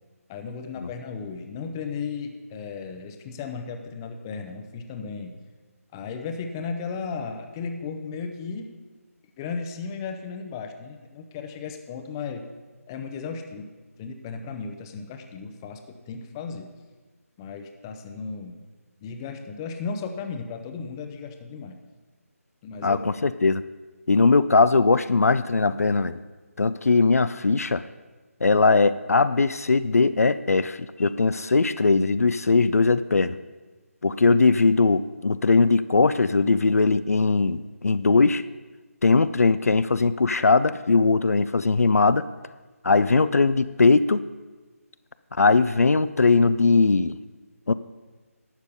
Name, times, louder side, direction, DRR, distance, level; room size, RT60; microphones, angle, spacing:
voice 1, 0.3-5.3 5.9-8.7 9.4-12.4 12.9-13.7 14.0-16.7 17.4-18.6 19.0-21.8 22.6-23.0 24.2-24.3, left 5 dB, 15° left, 6 dB, 0.6 m, -35 dB
voice 2, 22.8-23.6 24.1-26.2 26.6-27.8 28.4-33.4 34.0-38.4 39.0-42.3 42.8-44.2 45.4-47.2 47.7-47.8, left 3 dB, 75° left, 14 dB, 0.5 m, -20 dB
12.0 x 8.2 x 5.3 m, 1.3 s
figure-of-eight pair, 160°, 8 cm